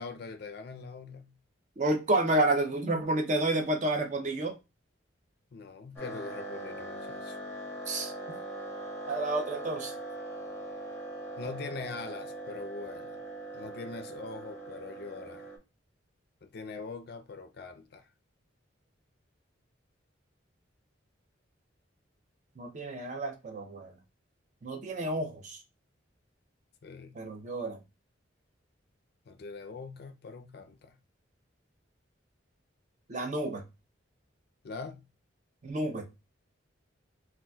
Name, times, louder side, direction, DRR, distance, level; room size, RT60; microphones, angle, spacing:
voice 1, 0.0-1.3 5.5-7.4 11.4-13.2 13.5-15.5 16.4-18.0 26.8-27.2 29.3-31.0 34.6-35.0, left 4 dB, 55° left, 0.4 m, -42 dB
voice 2, 1.8-4.5 7.9-8.1 9.1-10.0 22.6-23.9 24.6-25.6 27.1-27.8 33.1-33.6 35.6-36.0, right 2 dB, 40° right, 0.5 m, -30 dB
sound 1, 6.0-15.6, right 1 dB, 15° left, 0.7 m, -41 dB
3.8 x 2.3 x 2.2 m
head